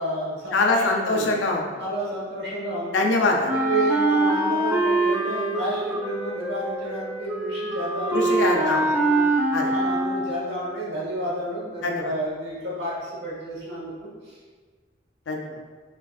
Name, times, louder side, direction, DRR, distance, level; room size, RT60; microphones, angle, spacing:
voice 1, 0.0-1.4 1.8-3.1 3.5-8.7 9.0-9.2 9.7-14.4, right 1 dB, 60° right, -6 dB, 1.4 m, -30 dB
voice 2, 0.5-1.7 2.9-3.5 8.1-8.8 9.5-9.7 11.8-12.1 15.3-15.6, left 3 dB, 70° left, 1 dB, 0.5 m, -23 dB
Wind instrument woodwind instrument, 3.5-10.5, right 2 dB, 10° right, 0.3 m, -24 dB
4.7 x 2.5 x 2.4 m, 1.5 s
head